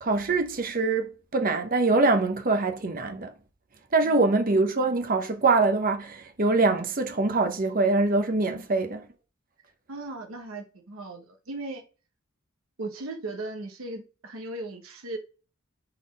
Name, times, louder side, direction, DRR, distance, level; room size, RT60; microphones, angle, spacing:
voice 1, 0.0-3.3 3.9-9.1, right 3 dB, 40° right, 0.9 m, -24 dB
voice 2, 9.9-11.8 12.8-15.2, right 2 dB, 80° right, 1.0 m, -37 dB
5.7 x 4.1 x 5.3 m
head